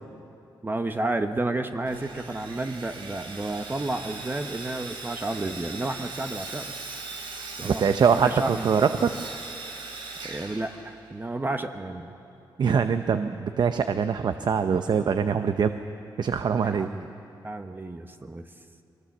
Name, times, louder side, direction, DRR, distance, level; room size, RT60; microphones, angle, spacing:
voice 1, 0.6-6.7 7.5-7.8 8.1-9.0 10.2-12.1 16.6-17.1 17.4-18.5, right 2 dB, 25° right, 6 dB, 1.0 m, -31 dB
Sawing, 1.8-11.3, right 3 dB, 85° right, 2.8 m, -39 dB
voice 2, 7.6-9.1 12.6-15.8 16.2-16.9, right 6 dB, 60° right, 9 dB, 0.7 m, -23 dB
23.0 x 19.0 x 7.2 m, 2.6 s
cardioid pair, 75°, 8 cm